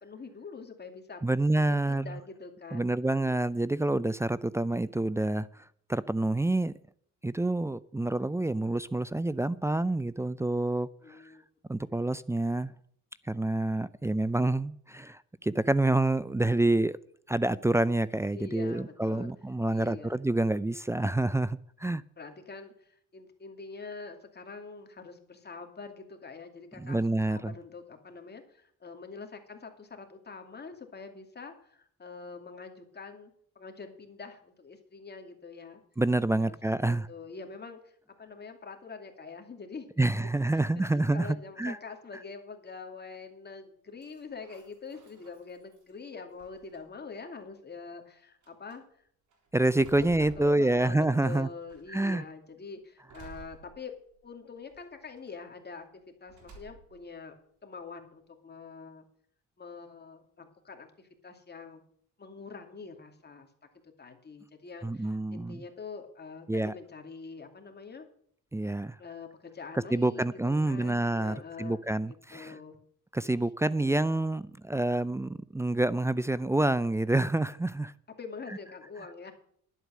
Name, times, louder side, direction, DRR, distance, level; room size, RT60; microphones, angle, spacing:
voice 1, 0.0-1.2 1.6-3.4 11.0-11.4 18.3-19.3 19.7-20.2 22.2-35.8 36.4-36.6 36.8-39.9 40.5-49.1 50.2-53.9 54.2-57.3 57.6-59.0 59.6-61.8 62.2-63.5 64.0-68.1 69.0-71.8 72.1-72.8 73.7-74.0 78.2-79.3, left 4 dB, 35° left, 4 dB, 2.6 m, -45 dB
voice 2, 1.2-2.1 2.7-5.5 5.9-6.7 7.2-11.2 11.7-12.7 13.3-17.0 17.3-22.0 26.8-27.5 36.0-37.1 40.0-41.3 41.6-41.8 49.5-51.5 51.9-52.2 64.8-65.6 66.5-66.7 68.5-69.0 69.9-72.6 73.1-77.9, right 2 dB, 10° right, 18 dB, 0.4 m, -27 dB
sound 1, 44.0-45.9 46.4-47.1 47.9-48.0 48.4-48.8 49.3-51.3 51.7-52.2 53.1-54.2 54.7-55.3 56.3-57.1, right 4 dB, 70° right, 3.9 m, -53 dB
11.0 x 8.2 x 7.5 m, 0.63 s
cardioid pair, 90°, 30 cm